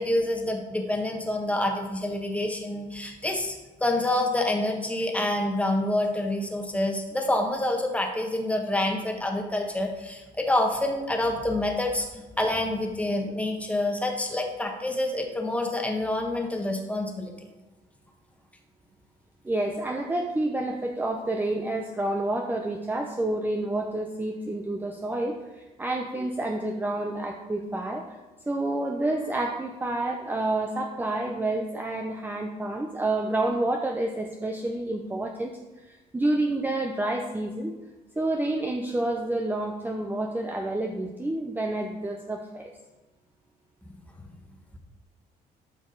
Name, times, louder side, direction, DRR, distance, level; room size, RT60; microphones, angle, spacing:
voice 1, 0.0-12.1 12.4-17.5, left 1 dB, 10° left, 2 dB, 1.4 m, -27 dB
voice 2, 19.4-28.1 28.5-37.7 38.2-42.7, right 2 dB, 10° right, 3 dB, 0.7 m, -29 dB
12.5 x 5.1 x 3.9 m, 1.1 s
cardioid pair, 110°, 17 cm